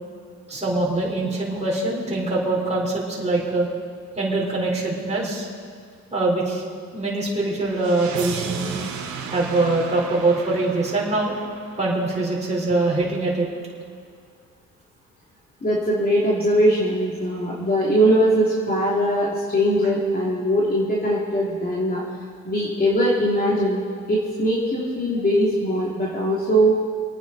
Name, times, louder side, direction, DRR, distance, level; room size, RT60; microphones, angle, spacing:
voice 1, 0.5-3.7 4.2-5.5 6.1-6.6 6.9-8.7 9.3-11.3 11.8-13.5, right 2 dB, 20° right, -4 dB, 4.2 m, -23 dB
sound 1, 7.7-12.7, right 6 dB, 70° right, 2.3 m, -34 dB
voice 2, 15.6-22.0 22.4-23.8 24.1-26.7, equal, 30° left, -5 dB, 2.9 m, -21 dB
25.5 x 9.4 x 4.2 m, 2.2 s
cardioid pair, 90°, 30 cm